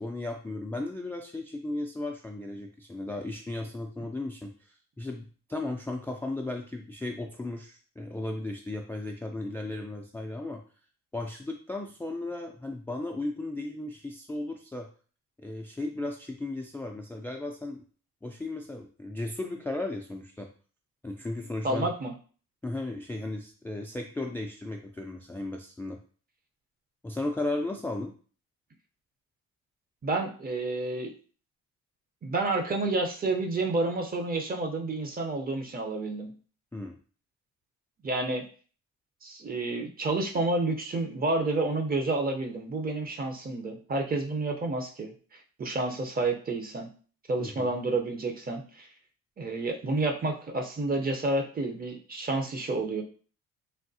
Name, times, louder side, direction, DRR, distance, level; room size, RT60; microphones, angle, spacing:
voice 1, 0.0-10.6 11.1-14.9 15.4-17.8 18.2-20.5 21.0-21.9 22.6-26.0 27.0-28.1 36.7-37.0 47.4-47.7, left 2 dB, 5° left, 2 dB, 0.3 m, -35 dB
voice 2, 21.6-22.1 30.0-31.1 32.2-36.3 38.0-38.4 39.2-45.1 45.6-46.9 47.3-48.9 49.4-53.0, right 2 dB, 30° right, 4 dB, 0.7 m, -29 dB
3.4 x 2.3 x 2.6 m, 0.40 s
cardioid pair, 90°, 30 cm